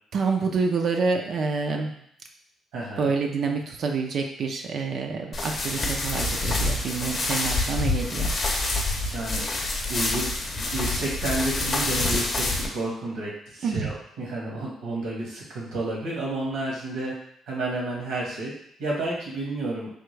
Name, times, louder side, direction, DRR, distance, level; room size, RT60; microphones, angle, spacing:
voice 1, 0.1-1.9 3.0-8.3 13.6-13.9, right 4 dB, 60° right, 3 dB, 0.4 m, -27 dB
voice 2, 2.7-3.1 9.1-9.4 9.9-10.2 10.7-12.5 12.7-17.1 17.5-18.5 18.8-19.9, right 2 dB, 90° right, -4 dB, 1.2 m, -30 dB
sound 1, 5.3-12.7, left 2 dB, 45° left, 0.7 m, -27 dB
3.5 x 2.4 x 3.1 m, 0.70 s
cardioid pair, 90°, 0 cm